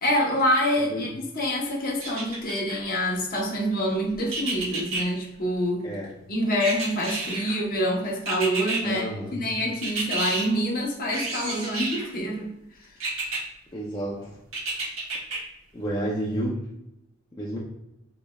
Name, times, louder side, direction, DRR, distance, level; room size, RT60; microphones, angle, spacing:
voice 1, 0.0-5.8 6.3-12.5, equal, 40° left, -2 dB, 1.1 m, -26 dB
sound 1, 2.0-2.8 4.3-5.0 6.6-7.6 8.3-8.8 9.8-10.4 11.1-12.1 13.0-13.4 14.5-15.4 15.8-15.9, right 3 dB, 70° right, 1.6 m, -30 dB
voice 2, 8.8-9.5 13.7-14.4 15.7-16.7 17.3-17.6, right 1 dB, 20° left, -5 dB, 0.6 m, -30 dB
5.2 x 4.1 x 2.3 m, 0.86 s
head